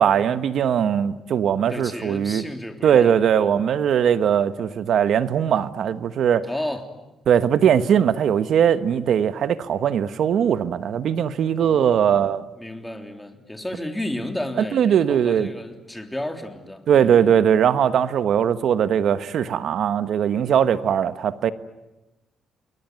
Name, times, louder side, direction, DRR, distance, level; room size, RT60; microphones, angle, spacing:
voice 1, 0.0-2.4 2.8-6.5 7.3-12.5 14.7-15.5 16.9-21.5, right 8 dB, 65° right, 12 dB, 1.3 m, -20 dB
voice 2, 1.7-3.5 6.5-6.9 11.6-12.2 12.6-17.3, left 1 dB, 10° left, 5 dB, 3.4 m, -33 dB
29.0 x 21.5 x 9.3 m, 1.0 s
cardioid pair, 90°, 0 cm